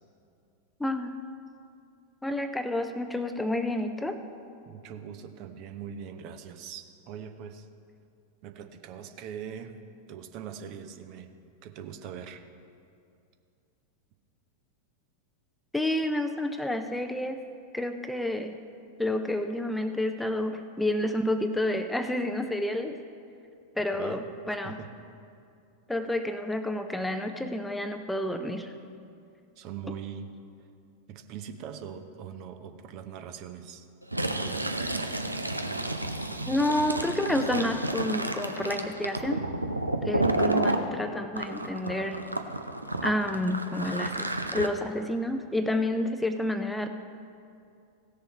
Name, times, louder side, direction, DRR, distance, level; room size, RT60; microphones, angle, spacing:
voice 1, 0.8-1.2 2.2-4.2 15.7-17.4 17.7-18.6 19.0-23.0 23.8-24.8 25.9-28.7 36.5-39.5 40.0-42.2 43.0-46.9, left 1 dB, 5° left, 8 dB, 0.5 m, -29 dB
voice 2, 4.7-7.7 8.4-9.8 10.1-11.3 11.6-12.4 23.9-24.3 24.6-24.9 29.6-30.3 31.1-33.9 34.2-35.4, right 8 dB, 40° right, 8 dB, 0.8 m, -42 dB
Fill (with liquid), 34.0-40.8 41.3-44.7, right 2 dB, 85° right, 0.6 m, -30 dB
16.5 x 6.8 x 4.5 m, 2.5 s
figure-of-eight pair, 90°, 0 cm